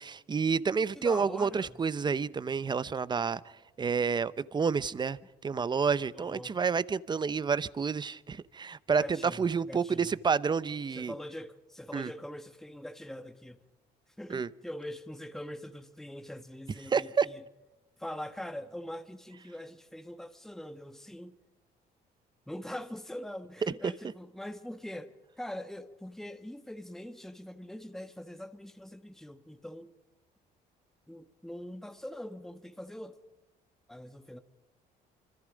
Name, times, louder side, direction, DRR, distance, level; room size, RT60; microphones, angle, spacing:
voice 1, 0.0-3.4 3.8-11.1 11.9-12.1 14.3-14.5 16.9-17.3 23.8-23.9, right 5 dB, 25° right, 0.8 m, -29 dB
voice 2, 1.0-1.8 6.1-6.6 9.0-10.2 10.9-13.6 14.2-17.4 18.0-21.3 22.5-29.9 31.1-33.2 33.9-34.4, left 1 dB, ahead, 1.4 m, -43 dB
26.0 x 25.5 x 5.2 m
cardioid pair, 110°, 17 cm